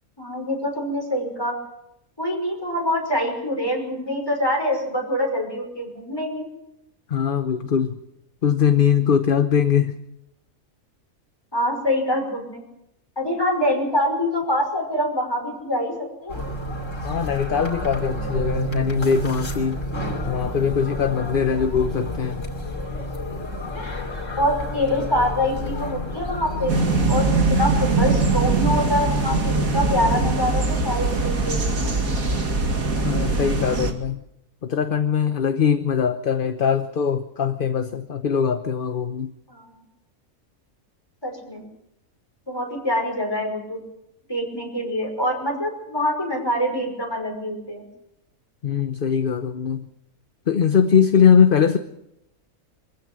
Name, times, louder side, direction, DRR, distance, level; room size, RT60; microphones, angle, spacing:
voice 1, 0.2-1.6 2.2-6.5 11.5-12.6 13.2-16.4 24.4-26.8 27.1-32.1 39.5-39.8 41.2-41.6 42.5-43.8 44.3-47.9, left 1 dB, 15° left, 0 dB, 5.7 m, -25 dB
voice 2, 7.1-8.0 8.4-10.0 17.0-19.8 20.3-22.4 33.0-34.2 34.6-39.3 48.6-49.9 50.5-51.8, left 7 dB, 45° left, 8 dB, 1.0 m, -21 dB
sound 1, 16.3-27.3, equal, 60° left, 3.3 m, -30 dB
sound 2, 26.7-33.9, right 3 dB, 75° right, 2.6 m, -22 dB
24.5 x 15.5 x 7.6 m, 0.85 s
omnidirectional pair, 1.5 m